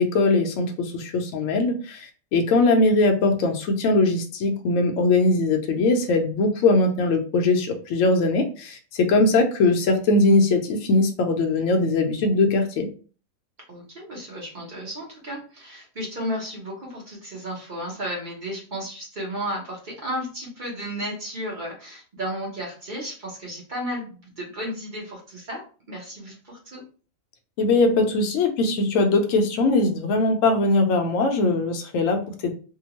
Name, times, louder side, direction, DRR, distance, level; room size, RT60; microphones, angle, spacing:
voice 1, 0.0-12.9 27.6-32.5, left 2 dB, 70° left, 4 dB, 0.9 m, -21 dB
voice 2, 13.7-26.8, equal, 40° right, -2 dB, 0.8 m, -33 dB
2.8 x 2.2 x 2.9 m, 0.38 s
omnidirectional pair, 1.6 m